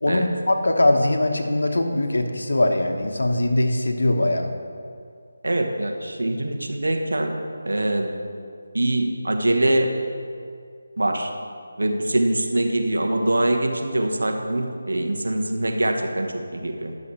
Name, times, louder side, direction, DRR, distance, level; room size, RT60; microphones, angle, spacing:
voice 1, 0.0-4.5, left 1 dB, 75° left, 4 dB, 1.1 m, -21 dB
voice 2, 5.4-7.3 7.6-8.1 8.7-10.0 11.0-11.3 11.8-16.9, right 1 dB, 75° right, 3 dB, 1.2 m, -23 dB
11.0 x 6.4 x 4.4 m, 2.3 s
figure-of-eight pair, 160°, 0 cm